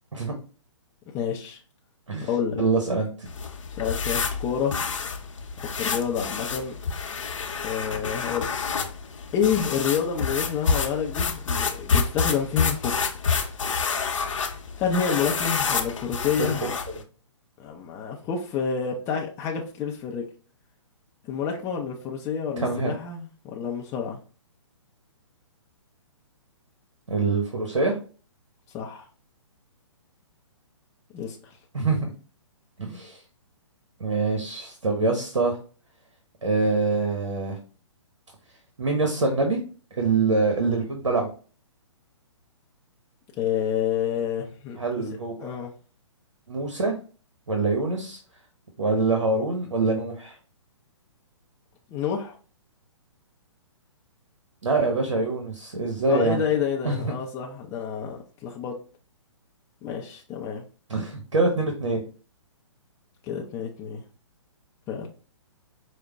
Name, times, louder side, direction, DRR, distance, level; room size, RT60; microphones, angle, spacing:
voice 1, 1.1-1.6 2.2-2.6 3.8-4.8 5.8-6.8 7.5-8.6 9.3-13.0 14.8-16.7 17.6-20.2 21.3-24.2 28.7-29.0 31.1-31.5 43.4-44.8 45.4-45.7 51.9-52.4 56.1-58.7 59.8-60.6 63.2-64.0 64.9-65.1, left 7 dB, 15° left, 0.5 m, -28 dB
voice 2, 2.6-3.3 16.4-16.5 16.9-17.0 22.6-22.9 27.1-28.0 31.7-32.1 32.8-33.2 34.0-35.6 36.4-37.6 38.8-39.6 39.9-41.3 44.8-45.5 46.5-46.9 47.5-48.2 48.8-50.4 54.6-56.4 56.8-57.1 60.9-62.0, right 3 dB, 85° right, 1.0 m, -25 dB
sound 1, 3.2-17.0, left 5 dB, 80° left, 0.7 m, -28 dB
4.9 x 2.1 x 3.5 m
hypercardioid pair, 135°, 16 cm